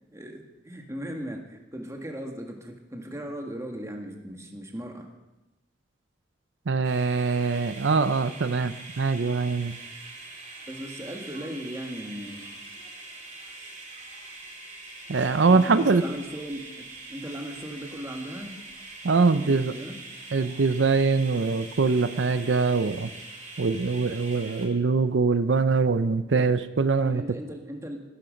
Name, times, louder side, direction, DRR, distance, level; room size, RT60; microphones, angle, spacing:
voice 1, 0.1-5.1 9.9-10.0 10.7-12.6 15.5-18.6 19.4-20.0 27.0-28.0, equal, 15° right, 2 dB, 1.9 m, -37 dB
voice 2, 6.7-9.8 15.1-16.0 19.0-19.7 20.3-23.1 23.6-27.2, right 4 dB, 80° right, 12 dB, 0.6 m, -23 dB
sound 1, 6.8-24.7, right 3 dB, 45° right, 3.4 m, -43 dB
17.5 x 11.5 x 5.2 m, 1.0 s
head